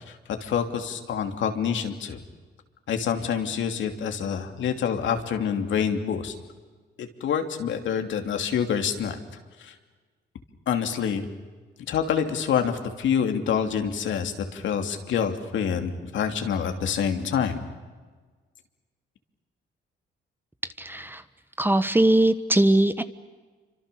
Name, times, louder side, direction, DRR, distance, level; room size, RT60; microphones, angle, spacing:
voice 1, 0.4-2.2 2.9-6.3 7.0-9.2 9.6-9.7 10.7-11.3 11.9-17.6, left 7 dB, 70° left, 5 dB, 2.9 m, -27 dB
voice 2, 20.8-21.2 21.6-23.0, right 1 dB, 10° right, 12 dB, 1.2 m, -20 dB
28.0 x 25.5 x 7.0 m, 1.4 s
cardioid pair, 90°, 20 cm